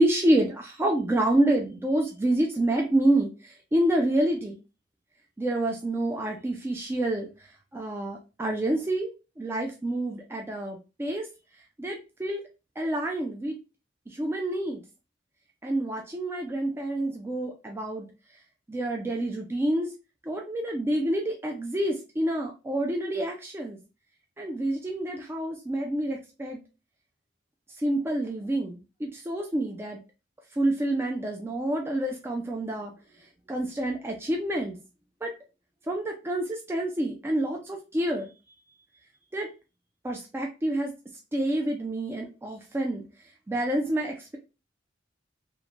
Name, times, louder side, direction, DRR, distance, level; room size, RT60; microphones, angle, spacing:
voice 1, 0.0-4.6 5.4-7.3 7.7-9.1 9.4-11.3 11.8-12.4 12.8-13.6 14.1-14.8 15.6-18.1 18.7-19.9 20.2-23.8 24.4-26.6 27.8-30.0 30.5-32.9 33.5-34.8 35.2-35.3 35.9-38.3 39.3-39.5 40.0-40.9 41.3-43.0 43.5-44.4, right 1 dB, 15° right, 1 dB, 0.3 m, -28 dB
3.0 x 2.1 x 2.4 m, 0.30 s
head